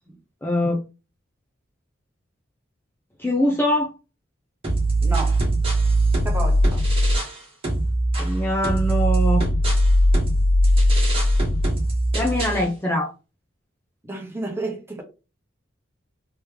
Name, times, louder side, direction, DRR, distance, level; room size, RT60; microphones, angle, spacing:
voice 1, 0.4-0.8 3.2-3.9 8.2-9.5 12.1-13.1, left 1 dB, 10° left, 0.5 m, -23 dB
sound 1, 4.6-7.4 7.6-12.6, equal, 30° right, 1.3 m, -20 dB
voice 2, 5.0-5.4 6.2-6.9 14.0-15.0, right 2 dB, 15° right, 1.0 m, -31 dB
3.5 x 3.0 x 3.3 m
head